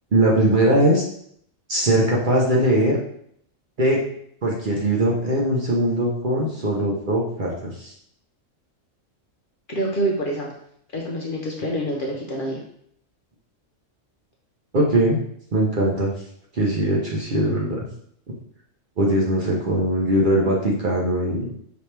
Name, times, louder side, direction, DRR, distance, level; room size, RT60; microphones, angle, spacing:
voice 1, 0.1-1.0 1.7-3.0 3.8-4.0 4.4-7.5 7.8-7.9 14.7-15.2 15.5-16.1 16.5-17.9 19.0-21.5, right 1 dB, 45° right, -3 dB, 0.8 m, -20 dB
voice 2, 9.7-10.5 10.9-12.6, right 1 dB, 50° left, -2 dB, 0.7 m, -26 dB
5.1 x 2.9 x 3.3 m, 0.68 s
omnidirectional pair, 1.4 m